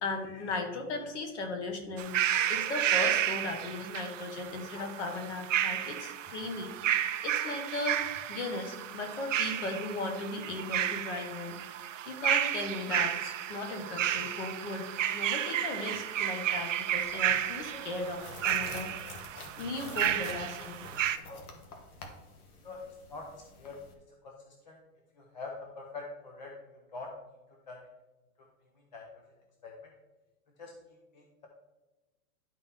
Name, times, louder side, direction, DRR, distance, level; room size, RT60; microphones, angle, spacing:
voice 1, 0.0-8.0 8.3-19.1 19.6-20.8 21.2-21.6, left 2 dB, 50° left, 5 dB, 1.3 m, -37 dB
sound 1, 2.0-21.2, right 11 dB, 55° right, 0.5 m, -32 dB
sound 2, 16.9-23.9, left 2 dB, 70° left, 1.6 m, -48 dB
voice 2, 22.6-23.3 23.6-23.8 24.2-24.8 25.2-26.5 26.9-27.1 27.7-27.8 28.9-29.0 29.6-29.7 30.6-30.7 31.1-31.5, left 3 dB, 30° left, 0 dB, 0.5 m, -44 dB
11.5 x 4.2 x 3.5 m, 1.1 s
hypercardioid pair, 175°, 46 cm